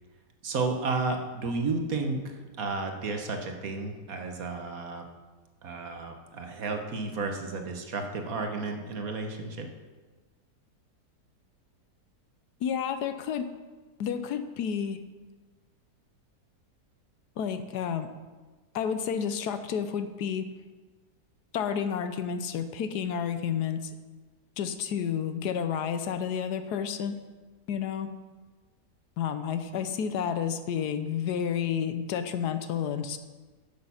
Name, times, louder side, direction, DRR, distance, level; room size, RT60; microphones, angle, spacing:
voice 1, 0.4-5.0 5.6-9.7, right 3 dB, 60° right, 4 dB, 1.5 m, -32 dB
voice 2, 12.6-13.5 14.0-15.0 17.4-18.1 18.7-20.5 21.5-23.9 24.6-27.2 27.7-28.1 29.2-33.2, left 8 dB, 75° left, 10 dB, 1.2 m, -30 dB
10.5 x 6.9 x 5.6 m, 1.3 s
omnidirectional pair, 1.8 m